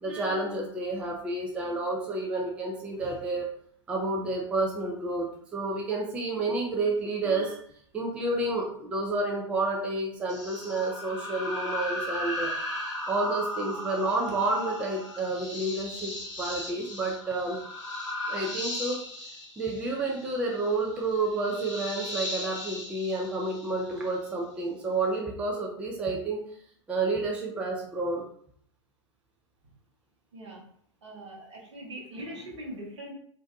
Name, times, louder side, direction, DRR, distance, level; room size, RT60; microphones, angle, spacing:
voice 1, 0.0-3.5 3.9-7.6 7.9-12.5 13.1-17.6 18.3-19.0 19.6-26.4 26.9-28.2 32.3-32.4, right 2 dB, 5° right, -1 dB, 0.3 m, -30 dB
sound 1, 10.3-24.2, left 1 dB, 65° left, 0.9 m, -36 dB
voice 2, 30.3-30.6 31.0-33.1, right 1 dB, 65° right, -2 dB, 0.8 m, -41 dB
2.6 x 2.1 x 2.3 m, 0.62 s
figure-of-eight pair, 100°, 16 cm